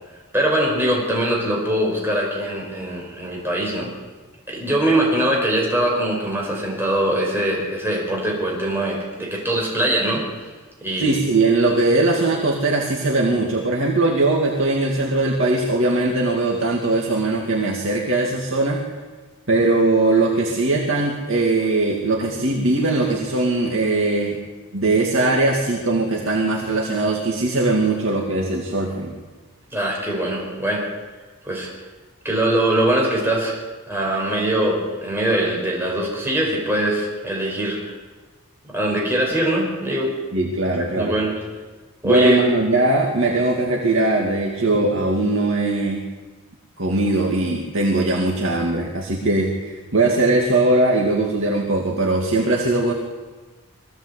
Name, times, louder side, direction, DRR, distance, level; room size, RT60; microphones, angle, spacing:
voice 1, 0.3-3.9 4.5-10.5 10.8-11.2 29.7-30.9 31.4-31.7 32.2-33.6 33.9-37.9 38.7-40.1 40.8-41.4 42.0-42.4, right 1 dB, 10° right, -3 dB, 5.3 m, -22 dB
voice 2, 11.0-18.8 19.5-24.4 24.7-29.1 40.3-41.1 42.0-46.0 46.8-52.9, right 2 dB, 60° right, -1 dB, 2.5 m, -20 dB
22.5 x 16.5 x 8.4 m, 1.3 s
head